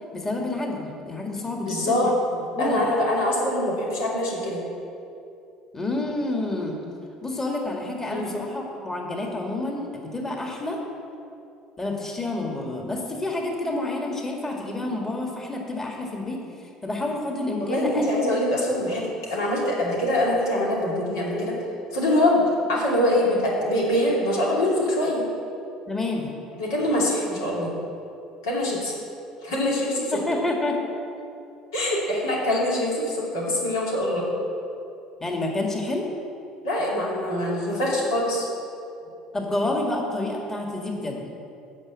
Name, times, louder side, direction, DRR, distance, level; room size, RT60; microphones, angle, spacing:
voice 1, 0.1-2.1 2.6-2.9 5.7-6.8 7.2-10.8 11.8-18.2 25.9-26.3 30.1-30.8 35.2-36.0 39.3-41.2, left 2 dB, 20° left, 0 dB, 1.8 m, -29 dB
voice 2, 1.6-2.1 2.6-4.6 8.1-8.3 17.6-21.6 21.9-22.4 22.7-25.2 26.6-27.7 28.4-28.9 29.4-30.2 31.7-34.2 36.6-38.5, left 1 dB, 80° left, -4 dB, 2.6 m, -24 dB
8.6 x 6.1 x 7.6 m, 2.7 s
hypercardioid pair, 70°, 2 cm